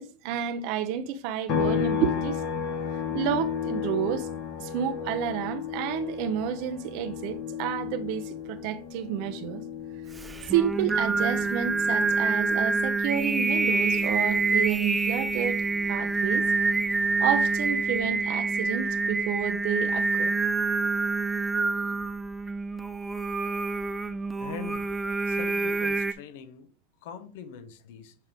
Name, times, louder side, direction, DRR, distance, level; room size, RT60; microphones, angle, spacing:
voice 1, 0.0-2.4 3.1-4.3 4.6-9.6 10.5-16.4 17.2-20.4, right 9 dB, 65° right, 0.6 m, -30 dB
sound 1, 1.5-15.0 15.4-17.6, left 8 dB, 55° left, 1.3 m, -34 dB
Singing, 10.2-26.1, right 3 dB, 15° right, 0.5 m, -26 dB
voice 2, 24.4-24.9 25.3-26.7 27.0-28.1, left 7 dB, 75° left, 0.8 m, -42 dB
8.3 x 3.6 x 3.5 m
supercardioid pair, 115°, 0 cm